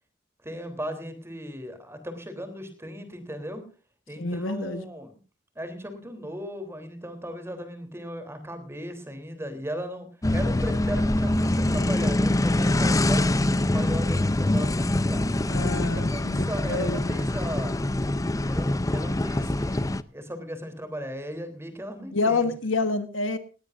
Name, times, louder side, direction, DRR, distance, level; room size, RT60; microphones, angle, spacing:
voice 1, 0.4-3.6 4.1-5.1 5.6-15.2 15.8-17.8 18.4-22.5, equal, 15° right, 3.5 m, -37 dB
voice 2, 4.2-4.8 15.5-17.1 22.1-23.4, left 3 dB, 80° left, 1.5 m, -28 dB
sound 1, 10.2-20.0, left 1 dB, 20° left, 0.6 m, -24 dB
18.5 x 17.5 x 2.6 m
head